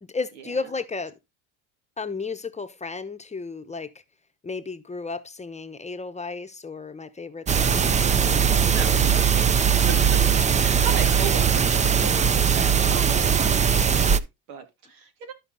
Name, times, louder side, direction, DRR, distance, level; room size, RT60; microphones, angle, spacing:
voice 1, 0.0-1.1 2.0-3.9 4.4-9.0, left 4 dB, 15° left, 0.8 m, -34 dB
sound 1, 7.5-14.2, right 7 dB, 20° right, 0.4 m, -20 dB
voice 2, 8.7-9.2 9.7-15.3, right 7 dB, 90° right, 2.5 m, -36 dB
12.5 x 4.5 x 3.9 m
supercardioid pair, 100°, 42 cm